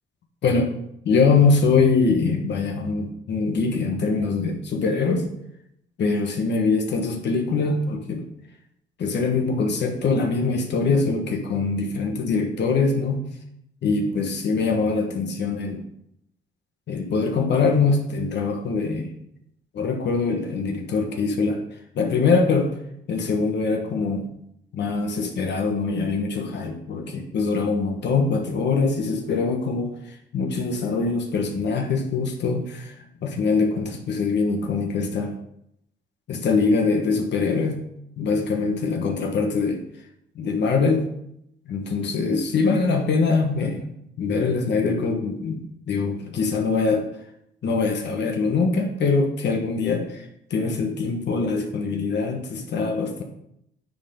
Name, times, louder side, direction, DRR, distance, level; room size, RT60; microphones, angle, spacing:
voice 1, 1.0-5.3 6.0-8.2 9.0-13.2 13.8-15.8 16.9-19.1 19.7-21.6 21.9-22.7 23.1-24.2 24.7-29.9 30.3-32.9 33.2-35.3 36.3-37.8 38.2-39.8 40.4-41.0 41.7-43.8 44.2-47.0 47.6-50.0 50.5-53.2, left 4 dB, 60° left, 3 dB, 1.2 m, -23 dB
9.4 x 3.8 x 5.2 m, 0.77 s
cardioid pair, 90°, 20 cm